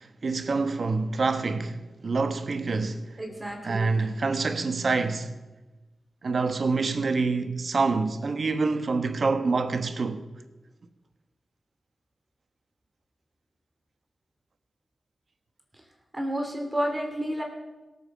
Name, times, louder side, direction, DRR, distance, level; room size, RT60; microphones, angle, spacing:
voice 1, 0.0-3.2 3.6-5.4 6.2-10.3, right 4 dB, 60° right, 1.1 m, -26 dB
voice 2, 3.2-3.9 16.1-17.4, equal, 20° right, 3.1 m, -30 dB
17.0 x 7.2 x 7.4 m
cardioid pair, 50°, 0 cm